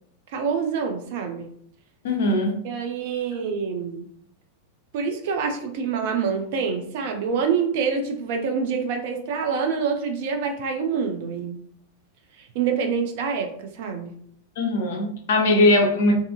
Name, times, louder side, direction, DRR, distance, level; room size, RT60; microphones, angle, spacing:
voice 1, 0.3-1.5 2.6-4.1 4.9-11.6 12.4-14.1, right 6 dB, 50° right, 4 dB, 0.4 m, -26 dB
voice 2, 2.0-2.6 14.6-16.1, left 2 dB, 60° left, 3 dB, 0.5 m, -20 dB
2.6 x 2.4 x 2.3 m, 0.62 s
figure-of-eight pair, 90°, 0 cm